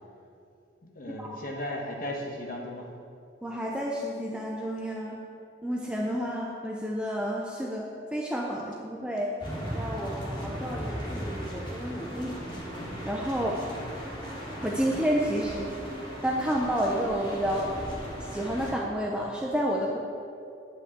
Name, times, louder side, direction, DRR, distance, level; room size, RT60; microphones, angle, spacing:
voice 1, 0.8-2.9 13.4-13.8, left 1 dB, 50° left, -1 dB, 1.2 m, -36 dB
voice 2, 3.4-5.2 5.6-9.4 9.7-12.4 13.0-13.6 14.6-15.8 16.2-17.7 18.2-20.0, equal, 5° right, -2 dB, 0.7 m, -30 dB
sound 1, 9.4-18.7, equal, 25° left, 2.1 m, -37 dB
9.8 x 5.5 x 8.1 m, 2.6 s
head